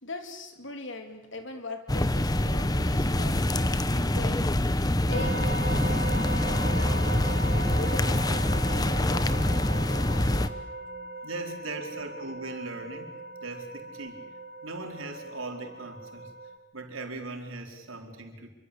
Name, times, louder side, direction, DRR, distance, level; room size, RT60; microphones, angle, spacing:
voice 1, 0.0-4.5 5.0-10.4 11.4-11.8, left 2 dB, 65° left, 6 dB, 3.6 m, -41 dB
sound 1, 1.9-10.5, left 1 dB, 20° left, 1.0 m, -25 dB
sound 2, 5.1-16.6, right 2 dB, 55° right, 2.6 m, -38 dB
Drum, 5.7-8.4, left 1 dB, 10° right, 6.1 m, -39 dB
voice 2, 11.2-13.1 13.4-14.2 14.6-16.3 16.7-18.5, right 2 dB, 80° right, 2 dB, 4.6 m, -39 dB
27.0 x 24.5 x 8.6 m, 1.0 s
head